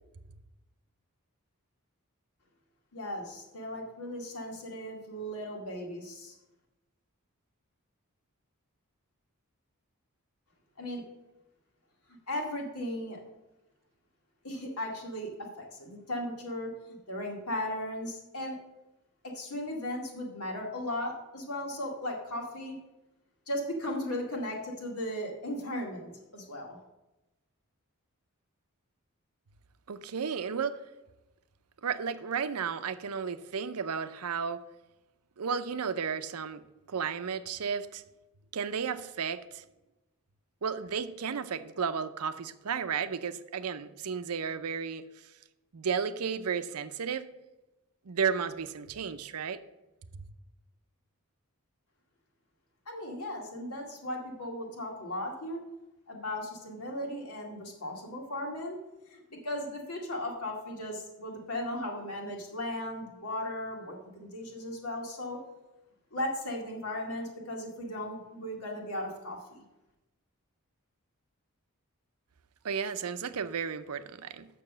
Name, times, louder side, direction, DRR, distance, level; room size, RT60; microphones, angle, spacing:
voice 1, 2.9-6.4 10.8-11.0 12.3-13.2 14.4-15.3 15.6-16.7 17.1-18.6 19.2-22.8 23.5-26.8 52.9-55.6 56.1-58.8 59.1-65.4 66.1-69.6, left 1 dB, 90° left, 0 dB, 2.3 m, -36 dB
voice 2, 29.9-30.8 31.8-34.6 35.4-36.6 36.9-38.0 38.5-39.6 40.6-45.0 45.7-47.3 48.1-49.6 72.6-74.5, right 6 dB, 90° right, 12 dB, 0.6 m, -33 dB
6.9 x 6.4 x 7.4 m, 1.0 s
head